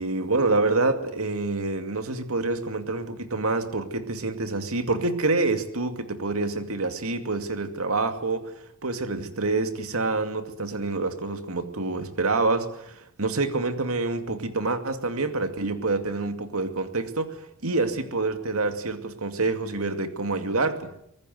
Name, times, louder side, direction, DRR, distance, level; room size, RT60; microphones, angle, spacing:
voice 1, 0.0-20.9, right 3 dB, 75° right, 8 dB, 2.4 m, -27 dB
25.0 x 19.5 x 8.0 m, 0.73 s
head